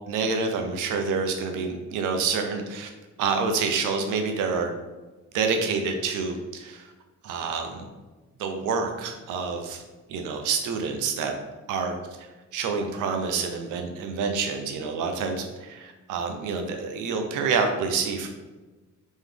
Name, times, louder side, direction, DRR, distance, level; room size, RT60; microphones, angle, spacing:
voice 1, 0.1-2.9 3.2-4.7 5.3-6.9 7.2-7.8 8.4-9.8 10.1-11.3 11.7-12.0 12.5-18.3, right 5 dB, 90° right, 5 dB, 0.6 m, -27 dB
3.7 x 3.1 x 3.3 m, 1.2 s
cardioid pair, 90°, 30 cm